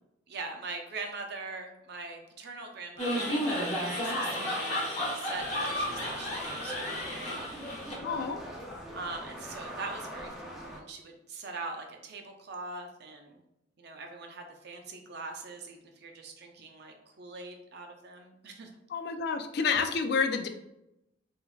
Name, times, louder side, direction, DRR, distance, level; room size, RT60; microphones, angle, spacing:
voice 1, 0.3-4.7 5.1-7.6 8.9-13.4 13.8-18.7, right 3 dB, 55° right, 4 dB, 0.5 m, -42 dB
sound 1, 3.0-7.9, equal, 35° left, 1.0 m, -32 dB
sound 2, 5.3-10.8, equal, ahead, 0.5 m, -43 dB
voice 2, 8.0-8.4 18.9-20.5, left 5 dB, 55° left, 7 dB, 0.3 m, -29 dB
3.4 x 3.1 x 2.3 m, 0.87 s
head